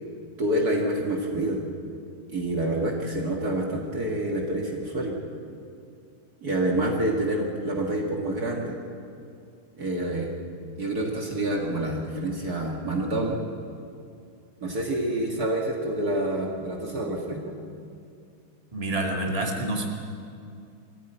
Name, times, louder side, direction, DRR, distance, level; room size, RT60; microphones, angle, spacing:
voice 1, 0.4-1.6 2.3-5.1 6.4-8.8 9.8-10.3 10.8-13.4 14.6-17.5, right 1 dB, 50° right, -1 dB, 2.4 m, -27 dB
voice 2, 18.7-19.9, right 1 dB, 15° right, 0 dB, 2.4 m, -27 dB
23.5 x 15.5 x 9.2 m, 2.4 s
omnidirectional pair, 2.2 m